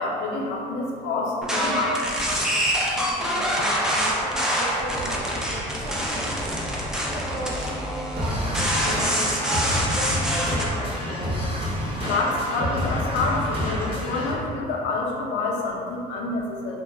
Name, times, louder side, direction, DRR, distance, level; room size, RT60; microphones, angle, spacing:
voice 1, 0.0-2.0 12.0-16.8, left 3 dB, 85° left, -2 dB, 0.5 m, -27 dB
sound 1, 1.4-10.7, equal, 5° right, 0.3 m, -26 dB
voice 2, 2.8-11.6, right 2 dB, 75° right, -4 dB, 0.4 m, -36 dB
sound 2, 8.2-14.3, left 1 dB, 30° right, 0.8 m, -28 dB
2.3 x 2.0 x 3.2 m, 2.4 s
cardioid pair, 110°, 17 cm